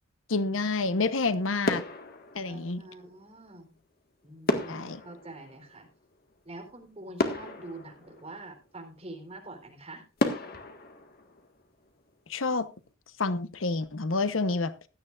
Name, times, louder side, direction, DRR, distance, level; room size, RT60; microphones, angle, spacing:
voice 1, 0.3-1.8 2.3-2.8 4.7-5.0 12.3-12.7 13.2-14.7, left 3 dB, 85° left, 0.9 m, -28 dB
sound 1, 1.0-1.3 1.6-3.1 4.5-6.4 6.8-6.9 7.2-8.8 9.3-9.4 10.2-12.1 12.4-12.6, left 1 dB, 50° left, 1.7 m, -33 dB
voice 2, 2.5-3.8 4.2-5.9 6.4-10.0, right 2 dB, 30° right, 3.8 m, -45 dB
16.5 x 12.5 x 2.5 m
head